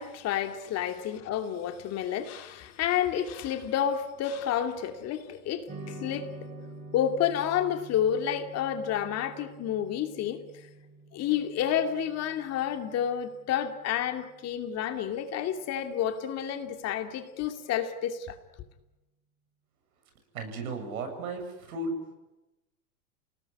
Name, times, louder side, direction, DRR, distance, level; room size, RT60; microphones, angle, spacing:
voice 1, 0.0-6.3 6.9-10.4 11.1-18.4, left 9 dB, 35° left, 2.6 m, -30 dB
sound 1, 5.7-14.2, right 2 dB, 20° right, 7.9 m, -47 dB
voice 2, 20.3-21.9, right 3 dB, 70° right, 8.0 m, -35 dB
28.5 x 18.5 x 9.8 m
hypercardioid pair, 120°, 44 cm